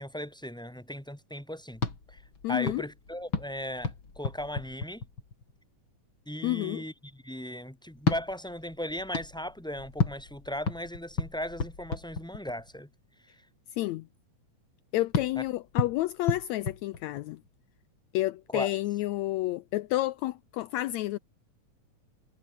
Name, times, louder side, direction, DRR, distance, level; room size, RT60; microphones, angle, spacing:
voice 1, 0.0-1.8 2.1-2.2 2.5-5.0 6.3-12.9 15.3-15.4 18.5-18.7, equal, ahead, 6.3 m, -37 dB
sound 1, 1.7-5.6 7.9-12.8 15.1-17.6, left 4 dB, 40° left, 4.3 m, -34 dB
voice 2, 2.4-2.8 6.4-6.8 13.8-14.1 14.9-17.4 18.1-21.2, left 16 dB, 75° left, 1.9 m, -30 dB
omnidirectional pair, 3.3 m